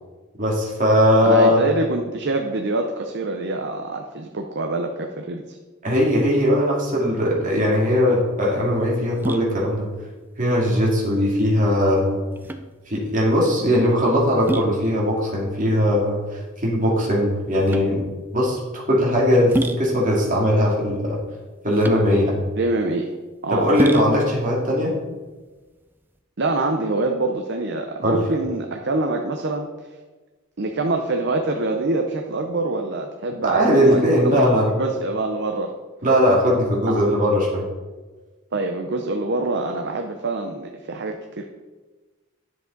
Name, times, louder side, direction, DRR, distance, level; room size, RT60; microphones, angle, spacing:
voice 1, 0.4-1.6 5.8-9.9 10.4-12.2 12.9-16.2 16.6-18.0 18.3-18.6 18.9-21.2 21.6-22.4 23.5-24.9 28.0-28.2 33.4-34.7 36.0-37.6, equal, 40° right, -3 dB, 2.3 m, -19 dB
voice 2, 1.2-5.6 22.6-23.1 23.4-23.8 26.4-29.9 30.6-34.0 34.2-34.3 34.7-35.7 36.9-37.0 38.5-41.4, right 2 dB, 55° right, 3 dB, 0.7 m, -25 dB
sound 1, 7.6-26.2, right 1 dB, 10° right, 0.4 m, -32 dB
10.0 x 7.7 x 4.0 m, 1.3 s
head